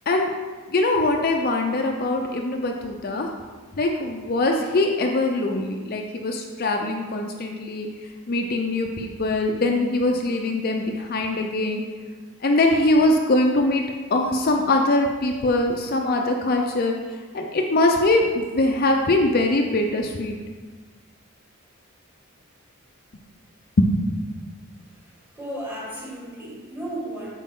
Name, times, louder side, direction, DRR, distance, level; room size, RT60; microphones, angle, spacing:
voice 1, 0.7-3.3 3.8-7.9 8.3-11.8 12.4-13.9 14.1-17.0 17.3-20.4 23.8-23.9, left 2 dB, 45° left, 2 dB, 0.5 m, -22 dB
voice 2, 25.3-27.3, right 1 dB, 10° right, -6 dB, 1.9 m, -34 dB
8.3 x 5.3 x 3.7 m, 1.4 s
head